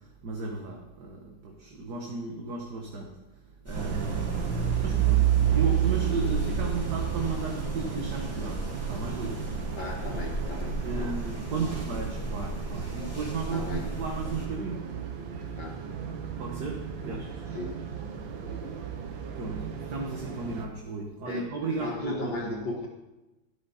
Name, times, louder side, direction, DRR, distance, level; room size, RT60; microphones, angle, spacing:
voice 1, 0.2-3.1 3.7-4.4 4.8-9.4 10.8-14.9 16.4-17.4 19.4-22.6, right 3 dB, 60° right, 0 dB, 1.9 m, -34 dB
sound 1, 3.7-14.5, right 2 dB, 5° left, 2.9 m, -36 dB
Calle desde terraza, 3.7-20.6, right 9 dB, 85° right, 1.9 m, -31 dB
voice 2, 9.8-11.3 11.6-11.8 13.5-13.9 15.6-15.8 17.0-17.8 21.2-22.9, left 2 dB, 60° left, -1 dB, 2.1 m, -37 dB
12.0 x 11.5 x 4.2 m, 1.0 s
omnidirectional pair, 2.1 m